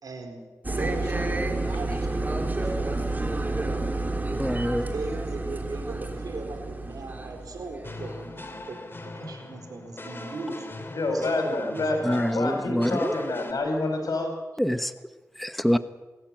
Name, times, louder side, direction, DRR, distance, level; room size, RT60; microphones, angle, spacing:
voice 1, 0.0-0.4 0.7-3.8 4.9-8.8 9.1-10.7 11.1-11.8, right 3 dB, 85° right, 5 dB, 4.2 m, -38 dB
sound 1, 0.6-8.4, right 2 dB, 25° right, 3.0 m, -30 dB
voice 2, 4.4-4.8 12.0-13.1 14.6-14.9 15.4-15.8, equal, ahead, 11 dB, 1.1 m, -25 dB
sound 2, 7.8-13.5, left 2 dB, 35° left, 3.3 m, -40 dB
voice 3, 10.9-14.3, left 2 dB, 75° left, 4 dB, 5.8 m, -28 dB
24.5 x 14.0 x 9.0 m, 1.2 s
cardioid pair, 60°, 6 cm